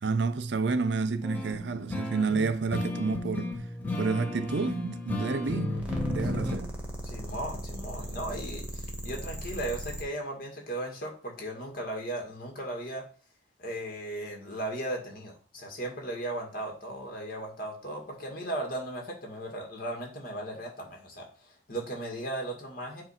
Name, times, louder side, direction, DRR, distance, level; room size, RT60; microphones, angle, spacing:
voice 1, 0.0-3.5 4.0-5.8 6.0-6.7, right 4 dB, 65° right, 0.5 m, -29 dB
sound 1, 1.2-6.5, left 2 dB, 10° left, 1.0 m, -34 dB
sound 2, 5.7-10.0, right 1 dB, 5° right, 1.3 m, -38 dB
voice 2, 7.0-13.1 13.6-23.0, right 1 dB, 50° left, 2.1 m, -36 dB
7.8 x 2.7 x 5.7 m
head